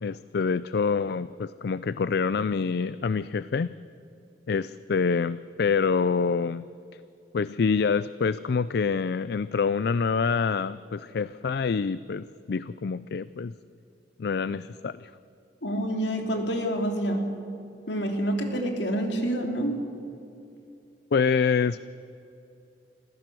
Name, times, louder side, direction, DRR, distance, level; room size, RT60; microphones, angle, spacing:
voice 1, 0.0-3.7 4.5-6.6 7.3-13.5 14.2-15.1 21.1-21.8, left 5 dB, 65° left, 16 dB, 0.4 m, -26 dB
voice 2, 15.6-17.3 17.9-19.8, right 1 dB, 90° left, 4 dB, 3.1 m, -27 dB
25.5 x 15.5 x 7.7 m, 2.7 s
head